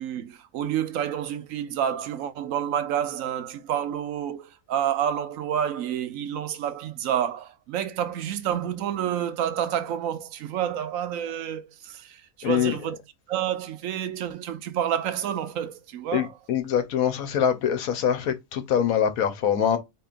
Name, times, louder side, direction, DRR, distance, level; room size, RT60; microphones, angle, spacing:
voice 1, 0.0-13.0 13.3-16.3, right 10 dB, 75° right, 0.9 m, -29 dB
voice 2, 12.4-12.8 16.1-19.8, left 9 dB, 85° left, 1.2 m, -24 dB
4.5 x 2.9 x 2.5 m
omnidirectional pair, 1.5 m